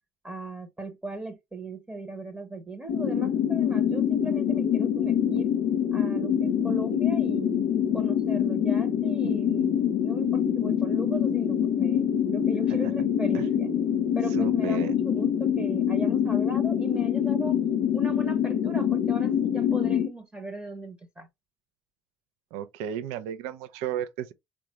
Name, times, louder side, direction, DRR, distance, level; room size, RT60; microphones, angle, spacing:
voice 1, 0.2-5.5 5.9-7.6 7.9-13.7 14.1-17.6 17.9-21.3, right 2 dB, 15° right, 0.9 m, -38 dB
sound 1, 2.9-20.1, left 8 dB, 70° left, 0.6 m, -25 dB
voice 2, 14.3-14.9 22.5-24.3, right 9 dB, 70° right, 0.4 m, -33 dB
3.7 x 2.3 x 2.8 m
hypercardioid pair, 60°, 11 cm